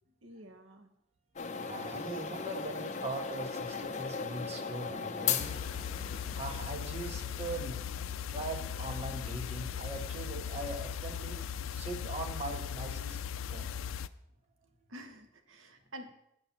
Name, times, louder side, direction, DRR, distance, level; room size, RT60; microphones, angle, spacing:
voice 1, 0.2-0.9 2.0-2.2 4.1-4.3 14.9-16.1, right 1 dB, 85° right, 7 dB, 1.0 m, -49 dB
sound 1, 1.4-12.5, left 6 dB, 35° left, 0.7 m, -40 dB
voice 2, 1.6-5.5 6.3-13.2 13.5-13.7, right 2 dB, 30° right, 3 dB, 1.3 m, -41 dB
sound 2, 5.4-14.1, left 8 dB, 85° left, 0.4 m, -38 dB
9.0 x 5.6 x 7.3 m, 0.78 s
head